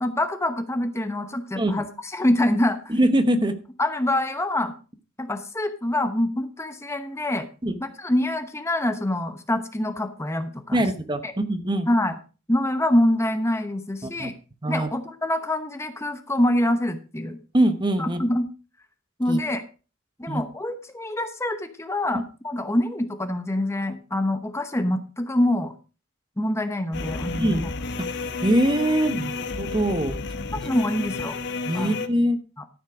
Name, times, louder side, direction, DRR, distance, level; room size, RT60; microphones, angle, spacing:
voice 1, 0.0-2.9 3.8-4.7 5.2-7.5 7.8-10.9 11.2-11.3 11.9-12.1 12.5-14.3 14.7-17.4 18.0-18.5 19.2-19.6 20.2-25.7 26.4-27.7 30.6-31.4 31.7-31.9 32.6-32.7, left 1 dB, 15° left, 8 dB, 0.9 m, -25 dB
voice 2, 2.9-3.5 7.6-7.8 10.7-11.9 14.0-14.3 14.6-14.9 17.5-18.2 19.3-19.4 20.3-20.4 27.4-27.6 28.0-28.1 28.4-30.2 31.7-32.4, right 1 dB, 20° right, 9 dB, 1.0 m, -23 dB
sound 1, 26.9-32.1, left 3 dB, 55° left, 1.1 m, -31 dB
13.0 x 7.4 x 4.9 m, 0.34 s
head